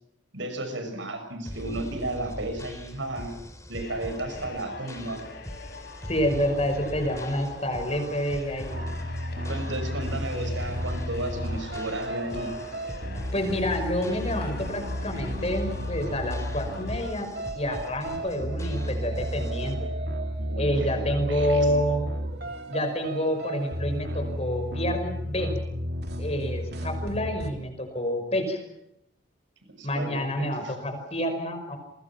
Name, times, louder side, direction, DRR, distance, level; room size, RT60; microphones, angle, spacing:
voice 1, 0.3-3.3 3.7-5.2 9.5-12.5 20.5-21.7 29.7-30.7, right 2 dB, 70° right, 7 dB, 6.4 m, -34 dB
sound 1, 1.4-19.7, equal, 15° left, 3.5 m, -41 dB
sound 2, 3.8-17.1, left 3 dB, 50° left, 4.9 m, -44 dB
voice 2, 6.1-8.8 13.3-17.3 17.5-19.9 20.6-22.1 22.7-25.6 26.2-28.6 29.8-31.8, equal, 30° left, 6 dB, 5.5 m, -28 dB
sound 3, 8.7-27.5, equal, 55° right, 3.3 m, -33 dB
29.5 x 23.5 x 6.0 m, 0.80 s
head